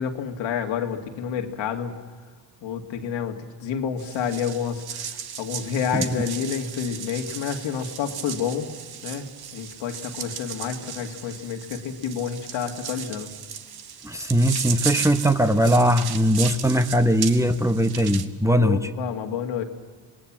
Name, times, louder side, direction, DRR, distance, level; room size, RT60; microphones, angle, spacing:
voice 1, 0.0-1.9 2.6-8.7 9.0-13.3 18.6-19.6, left 7 dB, 85° left, 4 dB, 2.1 m, -29 dB
sound 1, 4.0-18.3, right 8 dB, 55° right, 1.4 m, -35 dB
voice 2, 14.0-18.9, equal, 5° right, 9 dB, 0.9 m, -20 dB
25.5 x 19.0 x 7.4 m, 1.5 s
cardioid pair, 100°, 44 cm